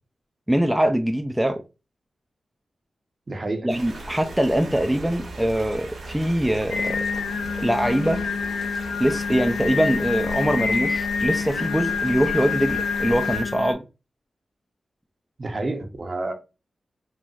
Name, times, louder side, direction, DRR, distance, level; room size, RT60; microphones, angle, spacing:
voice 1, 0.5-1.6 3.6-7.1 7.6-8.2 9.0-13.8, right 1 dB, 10° right, 0.4 m, -23 dB
voice 2, 3.3-3.7 15.4-16.3, right 2 dB, 45° right, 0.7 m, -29 dB
sound 1, 3.7-13.4, right 2 dB, 75° right, 1.0 m, -38 dB
Singing, 6.7-13.7, left 5 dB, 85° left, 0.3 m, -27 dB
4.0 x 2.0 x 2.4 m
cardioid pair, 45°, 0 cm